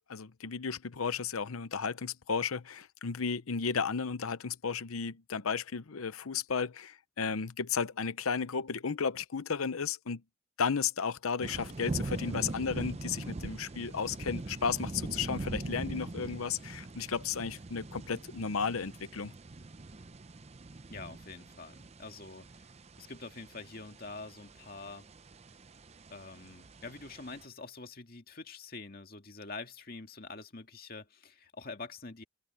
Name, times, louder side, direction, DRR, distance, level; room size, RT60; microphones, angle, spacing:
voice 1, 0.1-10.2 10.6-19.3, left 6 dB, 85° left, 0.8 m, -34 dB
sound 1, 11.4-27.5, right 2 dB, 30° right, 0.6 m, -42 dB
voice 2, 20.9-22.7 23.0-25.1 26.1-32.2, left 3 dB, 45° left, 2.1 m, -46 dB
head